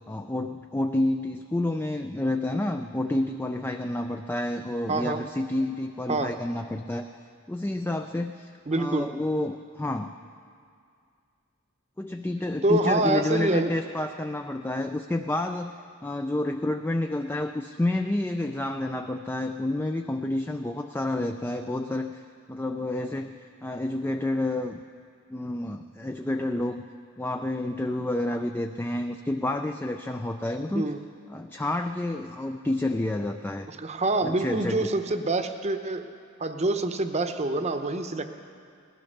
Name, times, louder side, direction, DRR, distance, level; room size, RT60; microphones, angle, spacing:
voice 1, 0.1-7.1 7.5-10.1 12.0-15.7 16.0-22.2 22.5-24.8 25.3-26.8 27.2-30.9 31.3-33.7 34.2-34.9, left 1 dB, 10° left, 6 dB, 0.3 m, -29 dB
voice 2, 4.9-5.2 6.1-6.3 8.7-9.1 12.6-13.7 30.7-31.0 33.7-36.1 36.4-38.3, right 2 dB, 30° right, 7 dB, 0.8 m, -26 dB
18.0 x 12.0 x 6.5 m, 2.3 s
head